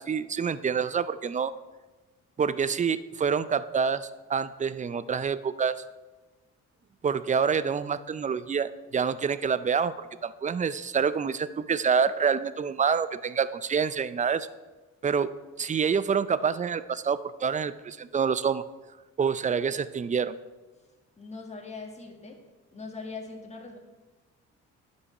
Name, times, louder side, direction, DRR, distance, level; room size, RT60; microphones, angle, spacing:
voice 1, 0.0-1.5 2.4-5.7 7.0-14.5 15.0-18.6 19.2-20.4, right 6 dB, 25° right, 15 dB, 0.4 m, -27 dB
voice 2, 21.2-22.4 22.7-23.8, left 4 dB, 20° left, 1 dB, 1.7 m, -41 dB
9.7 x 5.5 x 6.5 m, 1.2 s
cardioid pair, 90°, 30 cm